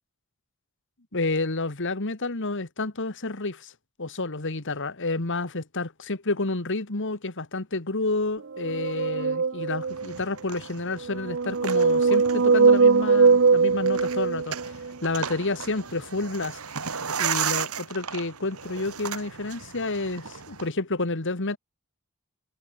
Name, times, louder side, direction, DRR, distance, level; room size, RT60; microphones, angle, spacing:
voice 1, 1.1-3.7 4.0-14.8 15.0-16.6 17.2-21.6, left 2 dB, 60° left, 2.0 m, -30 dB
sound 1, 8.5-10.2 11.0-14.9, right 4 dB, 55° right, 0.8 m, -21 dB
sound 2, 9.8-20.7, right 7 dB, 80° right, 2.5 m, -35 dB
head